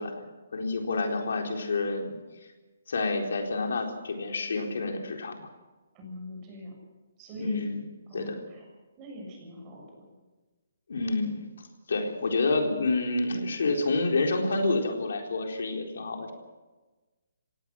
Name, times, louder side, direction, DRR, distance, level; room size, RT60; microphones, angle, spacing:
voice 1, 0.0-2.5 2.9-5.5 7.4-7.8 8.1-8.4 10.9-11.4 11.9-16.3, left 3 dB, 70° left, 2 dB, 4.1 m, -29 dB
voice 2, 5.9-6.7 7.2-7.6 8.1-8.6 9.0-10.0, equal, 20° right, 0 dB, 7.2 m, -43 dB
26.5 x 18.0 x 6.4 m, 1.2 s
hypercardioid pair, 170°, 0 cm